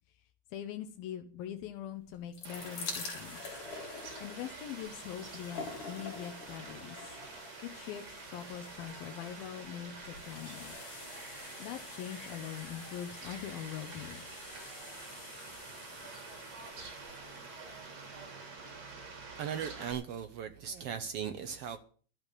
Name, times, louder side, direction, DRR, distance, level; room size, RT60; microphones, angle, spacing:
voice 1, 0.5-3.6 4.2-7.1 7.6-8.0 8.3-10.8 11.6-14.3, left 10 dB, 85° left, 3.0 m, -43 dB
sound 1, 2.1-19.1 19.9-20.0 20.2-20.3, left 4 dB, 60° left, 5.2 m, -48 dB
Fowl, 2.4-19.9, right 3 dB, 45° right, 4.6 m, -48 dB
voice 2, 19.4-21.8, right 8 dB, 85° right, 1.3 m, -38 dB
12.5 x 8.7 x 8.4 m
omnidirectional pair, 4.1 m